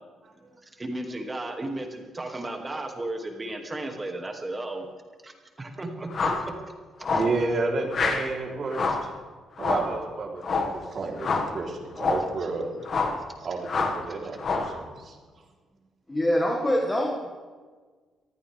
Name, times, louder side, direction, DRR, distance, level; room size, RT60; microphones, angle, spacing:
voice 1, 0.6-4.8 5.2-6.1 7.1-7.2 7.8-7.9 8.9-9.0, right 2 dB, 20° right, 3 dB, 2.4 m, -34 dB
sound 1, 6.1-6.5 7.0-7.4 7.9-8.3 8.7-9.1 9.6-9.9 10.4-10.8 11.2-11.5 11.9-12.3 12.8-13.2 13.7-14.0 14.4-14.8, left 4 dB, 50° left, 1.8 m, -27 dB
voice 2, 7.1-9.1 9.6-12.9 13.4-15.2, right 3 dB, 50° right, -1 dB, 3.6 m, -31 dB
voice 3, 16.1-17.3, equal, 20° left, 0 dB, 2.0 m, -24 dB
23.0 x 15.0 x 3.5 m, 1.5 s
cardioid pair, 90°, 0 cm